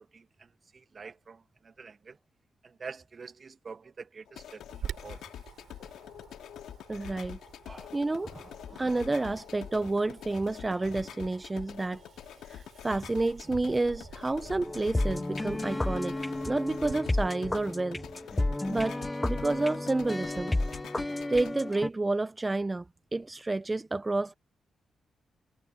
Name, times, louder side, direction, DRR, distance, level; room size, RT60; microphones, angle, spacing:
voice 1, 0.0-2.2 2.6-5.2, right 5 dB, 50° right, 1.3 m, -47 dB
sound 1, 4.3-21.5, left 10 dB, 85° left, 2.5 m, -46 dB
Wind, 4.7-17.0, right 8 dB, 75° right, 6.0 m, -49 dB
voice 2, 6.9-7.4 7.7-12.0 12.5-16.2 16.5-18.0 18.7-20.6 21.3-22.9 23.1-24.3, right 2 dB, 25° right, 0.6 m, -30 dB
sound 2, 14.6-21.9, left 2 dB, 20° left, 0.5 m, -32 dB
supercardioid pair, 55°, 0 cm